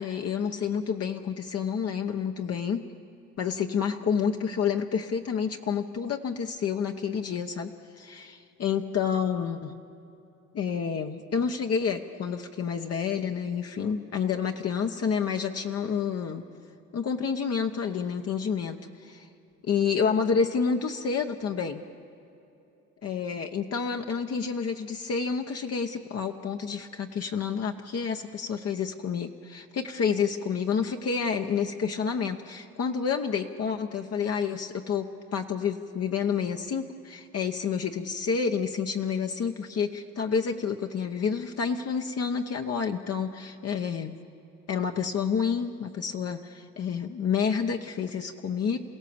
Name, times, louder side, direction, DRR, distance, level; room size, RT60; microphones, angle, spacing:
voice 1, 0.0-2.8 3.4-9.8 10.5-16.4 16.9-19.3 19.6-21.8 23.0-44.2 44.7-48.8, left 6 dB, 55° left, 3 dB, 1.0 m, -29 dB
28.5 x 16.5 x 7.1 m, 2.9 s
cardioid pair, 90°, 30 cm